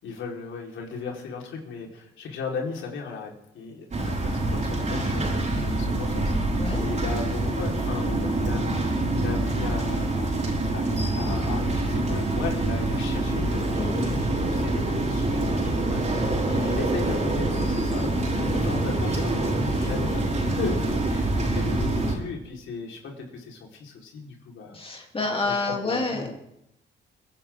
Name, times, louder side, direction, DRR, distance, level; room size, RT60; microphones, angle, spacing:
voice 1, 0.0-6.3 6.7-10.3 10.7-24.8 25.3-26.3, left 4 dB, 75° left, -1 dB, 4.5 m, -36 dB
sound 1, 3.9-22.2, right 2 dB, 35° right, 5.0 m, -25 dB
voice 2, 13.7-14.1 18.3-18.6 24.7-26.4, left 3 dB, 25° left, 1 dB, 3.2 m, -29 dB
30.0 x 11.0 x 3.8 m, 0.82 s
cardioid pair, 90°, 20 cm